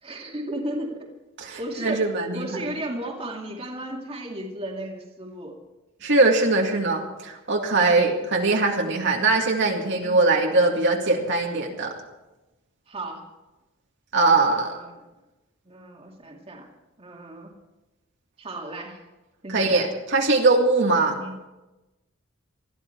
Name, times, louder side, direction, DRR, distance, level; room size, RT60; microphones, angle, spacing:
voice 1, 0.0-1.1 1.6-2.1 2.3-5.6 7.9-8.1 9.9-10.2 12.9-13.3 14.2-14.9 15.7-16.7 17.0-17.5 18.4-19.1 19.4-19.9 21.2-21.3, right 1 dB, 25° right, 0 dB, 2.3 m, -35 dB
voice 2, 1.4-2.5 6.0-11.9 14.1-14.8 19.5-21.2, right 3 dB, 55° right, 0 dB, 2.1 m, -21 dB
21.0 x 14.0 x 4.5 m, 1.0 s
head